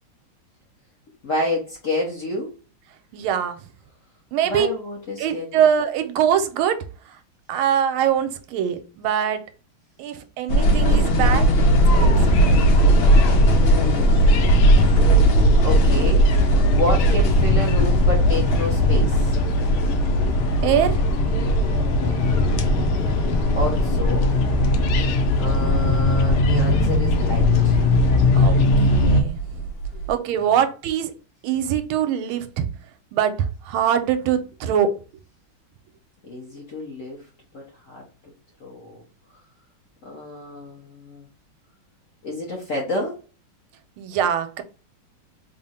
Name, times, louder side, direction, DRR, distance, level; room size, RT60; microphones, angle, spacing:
voice 1, 1.2-2.5 4.4-5.6 13.6-14.6 15.2-15.3 15.6-16.3 16.7-19.4 23.5-24.3 25.4-27.8 30.4-30.5 36.2-37.3 37.5-38.3 38.6-39.0 40.0-41.2 42.2-43.2, left 1 dB, 55° left, 0.9 m, -29 dB
voice 2, 3.1-3.6 4.3-4.7 5.2-6.8 7.5-9.4 10.0-12.2 20.6-21.0 28.3-28.6 28.9-29.6 30.1-31.1 31.4-32.7 33.1-35.0 44.0-44.6, right 9 dB, 80° right, 1.4 m, -23 dB
sound 1, 10.5-30.1, right 1 dB, 70° left, 1.4 m, -21 dB
sound 2, 11.8-29.2, left 2 dB, 90° left, 1.5 m, -20 dB
3.6 x 2.1 x 4.1 m
omnidirectional pair, 2.3 m